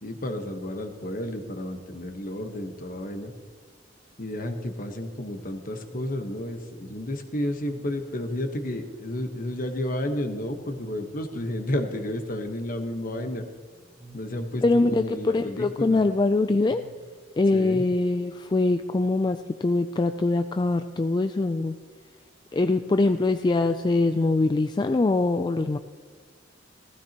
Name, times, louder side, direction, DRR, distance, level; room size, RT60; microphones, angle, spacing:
voice 1, 0.0-3.3 4.2-13.5 14.1-16.0 17.5-17.8, left 1 dB, 50° left, 6 dB, 1.2 m, -31 dB
sound 1, 5.8-17.4, right 1 dB, 25° right, 1.3 m, -51 dB
voice 2, 14.6-16.8 17.4-21.7 22.5-25.8, left 2 dB, 25° left, 8 dB, 0.3 m, -23 dB
16.0 x 15.0 x 3.0 m, 1.4 s
head